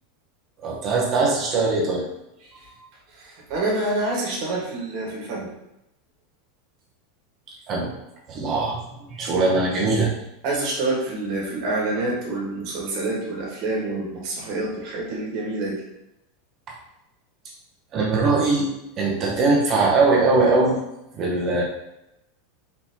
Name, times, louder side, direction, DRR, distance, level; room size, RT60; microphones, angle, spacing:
voice 1, 0.6-2.0 2.6-2.8 7.7-7.9 8.3-8.8 9.1-10.1 17.9-18.7 19.0-20.8 21.1-21.6, right 3 dB, 25° right, -2 dB, 0.9 m, -21 dB
voice 2, 3.1-5.5 10.4-15.8, right 2 dB, 45° right, -3 dB, 1.5 m, -27 dB
4.1 x 3.9 x 2.9 m, 0.86 s
supercardioid pair, 175°, 0 cm